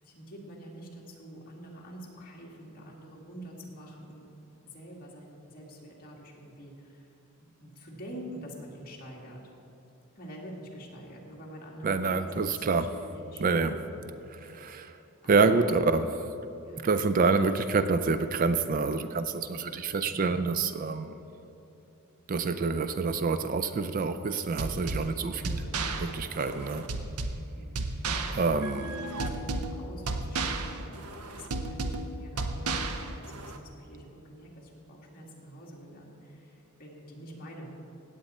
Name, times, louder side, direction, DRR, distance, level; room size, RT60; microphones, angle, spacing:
voice 1, 0.0-4.3 4.6-7.1 7.6-9.5 10.2-15.6 16.6-16.9 25.2-26.3 26.6-27.1 27.5-28.5 29.0-31.0 31.3-37.7, equal, 40° left, -3 dB, 2.0 m, -46 dB
voice 2, 11.8-12.9 13.4-13.7 14.4-15.0 15.3-16.1 16.8-21.2 22.3-25.6 26.0-26.8 28.3-28.9, right 4 dB, 40° right, 11 dB, 0.4 m, -27 dB
sound 1, 24.6-33.6, right 2 dB, 85° right, 0.7 m, -33 dB
17.0 x 8.4 x 4.3 m, 2.9 s
head